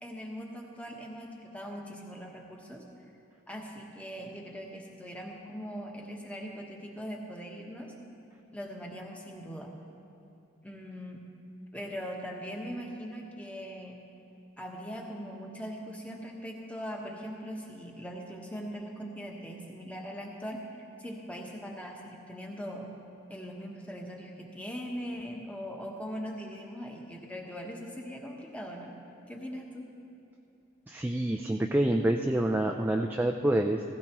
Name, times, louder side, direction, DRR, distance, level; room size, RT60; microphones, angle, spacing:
voice 1, 0.0-2.8 3.5-7.9 8.5-9.7 10.6-11.2 11.7-14.0 14.6-20.6 21.0-22.9 23.3-29.0 29.3-29.9, equal, 5° left, 0 dB, 1.1 m, -40 dB
voice 2, 30.9-33.8, right 1 dB, 10° right, 3 dB, 0.3 m, -27 dB
16.5 x 16.0 x 3.0 m, 2.9 s
head